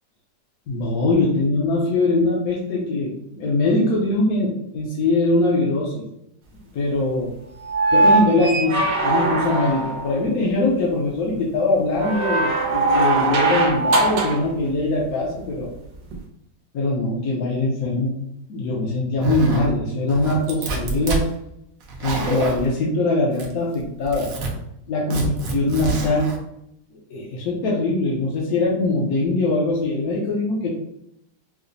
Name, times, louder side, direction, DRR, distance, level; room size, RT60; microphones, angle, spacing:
voice 1, 0.7-6.0 6.7-7.3 7.9-15.7 16.7-18.1 18.5-21.2 22.0-24.3 24.9-26.3 27.1-30.7, left 2 dB, 65° left, -4 dB, 1.1 m, -22 dB
sound 1, 7.6-10.1 12.0-14.5 16.1-16.2, right 2 dB, 90° right, 1.4 m, -20 dB
Zipper (clothing), 19.2-19.7 20.1-21.2 21.8-22.7 23.3-23.7 24.0-24.5 25.1-26.4, right 3 dB, 65° right, 1.0 m, -27 dB
4.9 x 2.1 x 2.6 m, 0.78 s
omnidirectional pair, 1.9 m